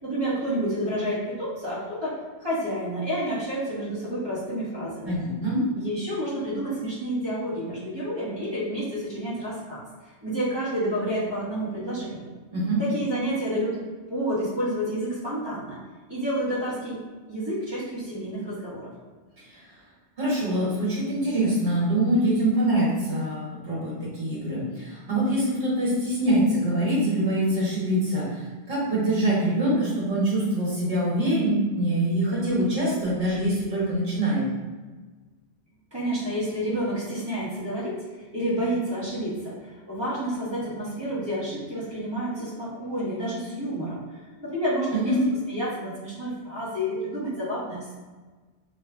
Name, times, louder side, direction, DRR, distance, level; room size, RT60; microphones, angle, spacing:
voice 1, 0.0-5.1 5.7-12.3 12.8-13.8 14.1-15.8 16.1-18.9 35.9-45.1 45.5-47.9, equal, 25° right, -9 dB, 1.4 m, -29 dB
voice 2, 5.0-5.6 12.5-12.8 19.4-19.6 20.2-34.5 44.9-45.2, right 1 dB, 55° right, -8 dB, 1.7 m, -24 dB
3.3 x 3.1 x 3.5 m, 1.3 s
omnidirectional pair, 1.2 m